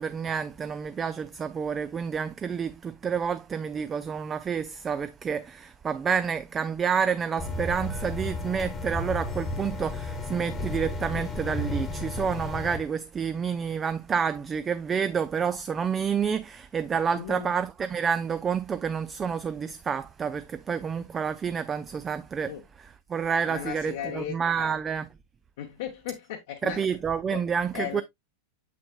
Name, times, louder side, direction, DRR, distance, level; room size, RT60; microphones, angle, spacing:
voice 1, 0.0-25.1 26.6-28.0, right 6 dB, 20° right, 0.3 m, -29 dB
sound 1, 7.4-12.8, left 2 dB, 20° left, 1.1 m, -33 dB
voice 2, 17.2-17.6 22.5-22.6 23.4-24.7 25.6-26.8 27.3-27.4 27.7-28.0, left 11 dB, 55° left, 0.8 m, -36 dB
7.3 x 5.9 x 2.2 m
figure-of-eight pair, 90°, 0 cm